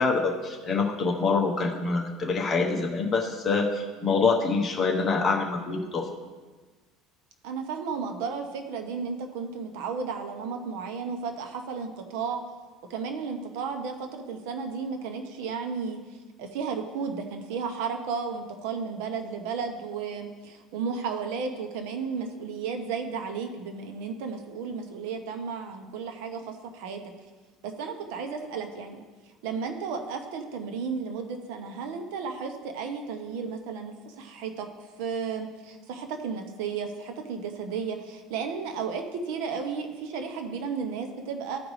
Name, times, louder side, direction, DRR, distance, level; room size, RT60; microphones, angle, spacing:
voice 1, 0.0-6.1, left 4 dB, 20° left, 0 dB, 1.1 m, -25 dB
voice 2, 7.4-12.4 12.9-16.0 16.4-27.0 27.6-29.0 29.4-34.7 35.0-41.7, right 5 dB, 75° right, 5 dB, 1.0 m, -33 dB
15.0 x 5.0 x 3.2 m, 1.3 s
cardioid pair, 160°, 0 cm